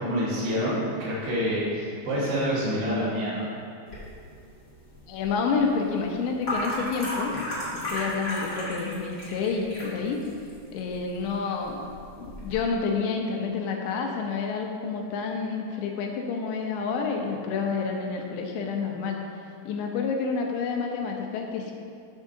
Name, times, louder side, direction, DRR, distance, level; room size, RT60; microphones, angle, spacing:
voice 1, 0.0-3.5, equal, 65° right, -9 dB, 4.1 m, -27 dB
sound 1, 3.9-12.6, left 1 dB, 45° left, 1.2 m, -36 dB
voice 2, 5.1-7.4 7.7-10.3 10.7-11.8 12.2-19.2 19.7-21.7, left 5 dB, 80° left, 1 dB, 3.0 m, -29 dB
14.0 x 6.3 x 2.7 m, 2.3 s
omnidirectional pair, 5.2 m